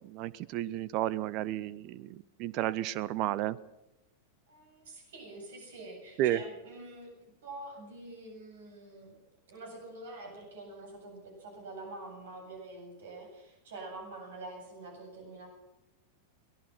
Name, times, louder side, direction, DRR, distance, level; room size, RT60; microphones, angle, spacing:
voice 1, 0.1-2.1 2.4-3.6 6.2-6.4, right 13 dB, 40° right, 21 dB, 0.7 m, -32 dB
voice 2, 4.5-9.2 9.5-15.5, right 2 dB, 60° right, 3 dB, 7.9 m, -46 dB
23.0 x 19.0 x 6.0 m, 0.93 s
figure-of-eight pair, 90°, 0 cm